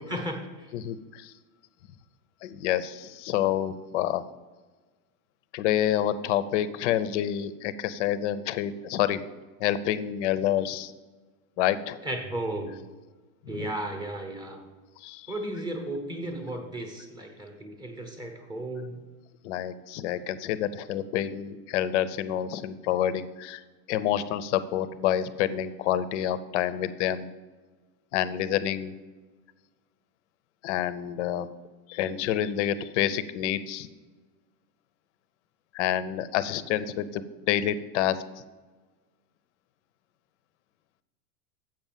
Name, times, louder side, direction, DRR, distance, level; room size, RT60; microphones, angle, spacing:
voice 1, 0.1-0.7 12.0-12.7 13.5-14.6 15.3-19.0, right 1 dB, 10° right, 4 dB, 0.7 m, -34 dB
voice 2, 0.7-1.3 2.4-4.2 5.5-9.2 9.6-10.9 11.6-12.0 13.5-13.7 15.0-15.3 19.4-23.6 23.9-27.3 28.1-28.9 30.6-31.5 31.9-33.9 35.7-38.4, left 11 dB, 50° left, 14 dB, 0.5 m, -28 dB
7.7 x 5.4 x 7.3 m, 1.3 s
supercardioid pair, 165°, 46 cm